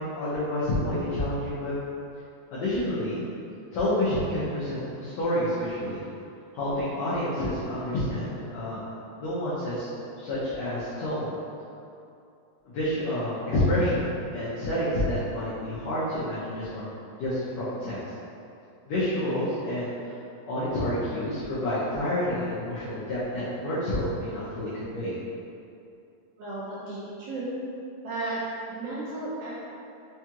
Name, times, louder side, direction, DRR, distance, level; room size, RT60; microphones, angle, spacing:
voice 1, 0.0-1.7 2.5-3.2 3.7-6.0 6.5-8.8 9.2-9.9 10.2-11.4 12.6-16.9 17.2-18.0 18.9-20.1 20.4-25.1, left 1 dB, 85° left, -11 dB, 1.5 m, -29 dB
voice 2, 26.4-27.6 28.0-28.4 28.7-29.6, right 2 dB, 80° right, -9 dB, 1.8 m, -34 dB
5.5 x 2.4 x 2.8 m, 2.6 s
omnidirectional pair, 4.0 m